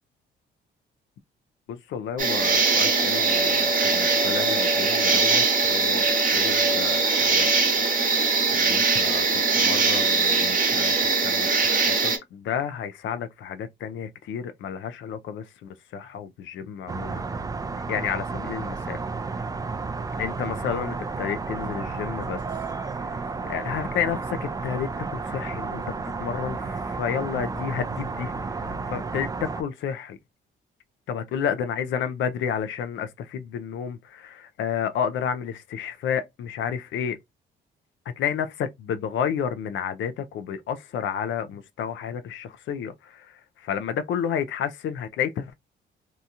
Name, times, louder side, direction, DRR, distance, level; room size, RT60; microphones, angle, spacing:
voice 1, 1.7-7.5 8.5-17.2 17.9-19.0 20.2-22.4 23.5-25.8 26.2-28.3 28.9-30.2 31.1-37.2 38.2-38.5 38.9-43.3 43.7-45.5, left 8 dB, 70° left, 0.4 m, -31 dB
sound 1, 2.2-12.2, right 4 dB, 45° right, 1.0 m, -21 dB
sound 2, 16.9-29.6, right 4 dB, 20° right, 0.3 m, -32 dB
2.8 x 2.3 x 2.6 m
cardioid pair, 90°, 20 cm